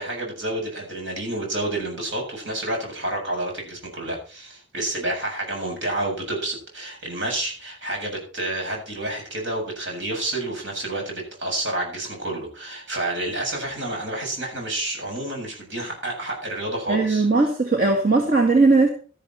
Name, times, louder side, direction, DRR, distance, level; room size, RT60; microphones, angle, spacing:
voice 1, 0.0-17.3, right 1 dB, 70° right, 1 dB, 7.5 m, -29 dB
voice 2, 16.9-18.9, right 3 dB, 50° right, 2 dB, 2.0 m, -18 dB
13.0 x 12.0 x 4.4 m, 0.38 s
head